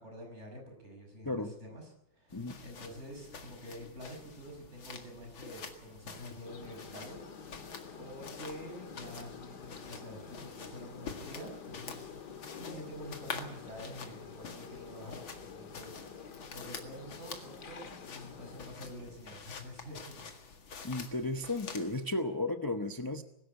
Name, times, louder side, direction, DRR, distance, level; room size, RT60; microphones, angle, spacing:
voice 1, 0.0-1.9 2.1-7.7 8.0-20.3, equal, 35° right, 2 dB, 6.5 m, -48 dB
sound 1, 2.3-22.0, left 5 dB, 85° left, 2.8 m, -48 dB
sound 2, 6.4-18.7, left 6 dB, 55° left, 2.3 m, -49 dB
voice 2, 20.8-23.2, left 2 dB, 30° left, 7 dB, 0.3 m, -34 dB
21.0 x 12.5 x 9.8 m, 0.81 s
omnidirectional pair, 2.1 m